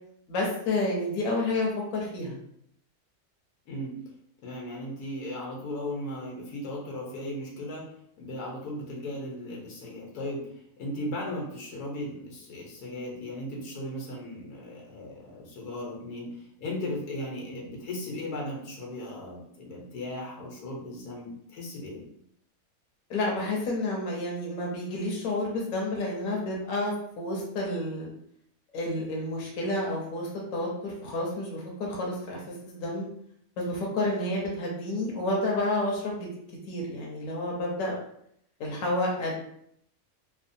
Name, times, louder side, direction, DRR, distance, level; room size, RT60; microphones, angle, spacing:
voice 1, 0.3-2.4 23.1-28.1 28.7-33.1 33.6-36.3 36.7-38.0 38.6-39.5, left 1 dB, 70° left, -2 dB, 1.1 m, -30 dB
voice 2, 3.7-4.0 4.4-7.8 8.2-10.4 10.8-22.1, left 1 dB, 85° left, -2 dB, 1.4 m, -37 dB
3.2 x 2.1 x 2.6 m, 0.70 s
omnidirectional pair, 1.6 m